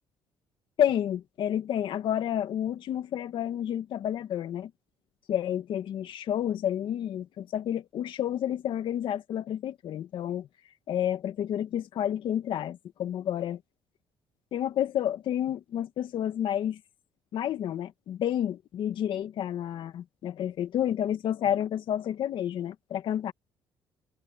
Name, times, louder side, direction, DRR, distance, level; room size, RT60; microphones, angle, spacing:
voice 1, 0.8-4.7 5.3-10.5 10.9-13.6 14.5-16.8 17.3-23.3, left 10 dB, 60° left, 2.2 m, -30 dB
cardioid pair, 120°, 9 cm